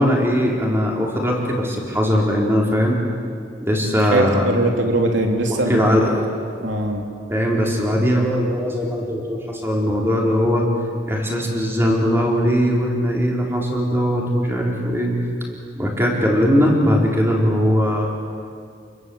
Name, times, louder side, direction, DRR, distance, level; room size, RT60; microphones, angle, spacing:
voice 1, 0.0-3.0 3.6-4.6 5.5-6.2 7.3-10.7 11.1-15.1 15.7-18.1, equal, 15° right, -2 dB, 4.3 m, -20 dB
voice 2, 4.1-6.1 6.6-7.0, right 1 dB, 80° right, 3 dB, 3.3 m, -21 dB
29.5 x 21.5 x 8.1 m, 2.3 s
head